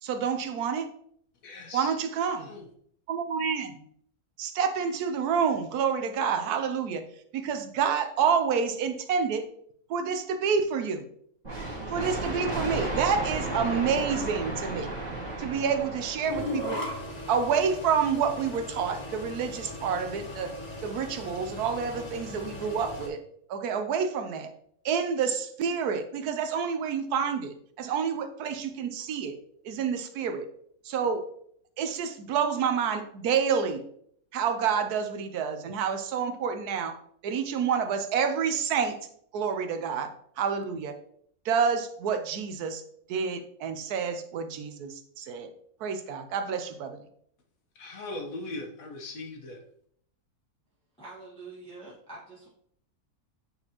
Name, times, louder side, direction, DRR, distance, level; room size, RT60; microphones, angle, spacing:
voice 1, 0.0-0.9 1.7-2.5 3.1-3.8 4.4-7.0 7.3-9.4 9.9-11.1 11.9-14.9 15.4-16.8 17.3-20.5 20.8-23.2 23.5-24.5 24.8-29.3 29.6-30.5 30.8-31.2 31.8-33.8 34.3-37.0 37.2-39.0 39.3-40.1 40.4-41.0 41.4-42.8 43.1-45.5 45.8-47.0, right 6 dB, 80° right, 8 dB, 1.2 m, -28 dB
voice 2, 1.4-2.7 47.7-49.6, left 2 dB, 65° left, 3 dB, 1.5 m, -40 dB
sound 1, 11.4-17.0, right 2 dB, 25° right, 1.8 m, -34 dB
sound 2, 16.2-23.1, left 1 dB, 30° left, 1.4 m, -38 dB
voice 3, 51.0-52.5, right 3 dB, 5° left, -7 dB, 1.3 m, -45 dB
8.7 x 4.0 x 2.9 m, 0.65 s
omnidirectional pair, 1.6 m